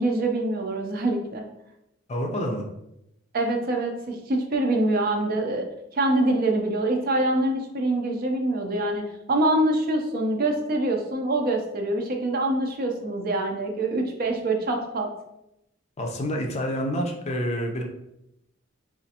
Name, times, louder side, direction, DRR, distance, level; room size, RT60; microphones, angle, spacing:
voice 1, 0.0-1.4 3.3-5.7 5.9-15.1, right 1 dB, 50° right, 3 dB, 0.5 m, -25 dB
voice 2, 2.1-2.6 16.0-17.8, equal, 35° left, 2 dB, 0.5 m, -28 dB
4.2 x 2.5 x 2.7 m, 0.84 s
head